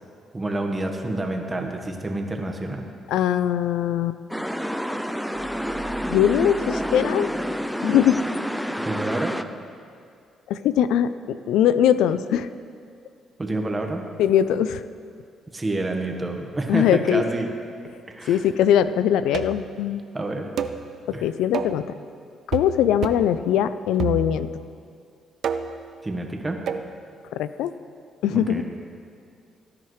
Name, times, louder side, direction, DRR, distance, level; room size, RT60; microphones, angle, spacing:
voice 1, 0.3-2.9 8.8-9.3 13.4-14.0 15.5-17.5 18.1-18.4 20.1-20.5 21.1-21.3 26.0-26.6 28.3-28.6, right 2 dB, 20° right, 3 dB, 1.4 m, -28 dB
voice 2, 3.1-4.2 6.1-7.3 7.8-8.2 10.5-12.5 14.2-14.8 16.7-17.2 18.3-20.0 21.1-21.9 22.5-24.5 27.3-27.7 28.2-28.6, left 10 dB, 90° left, 13 dB, 0.3 m, -21 dB
sound 1, 4.3-9.4, equal, ahead, 0.5 m, -28 dB
sound 2, 5.3-8.2, right 3 dB, 20° left, 1.9 m, -43 dB
sound 3, 19.3-19.7 20.6-20.8 21.5-21.8 22.5-22.8 23.0-23.3 24.0-24.6 25.4-25.8 26.7-26.9, right 7 dB, 65° right, 0.5 m, -29 dB
17.5 x 10.5 x 3.2 m, 2.3 s
cardioid pair, 90°, 0 cm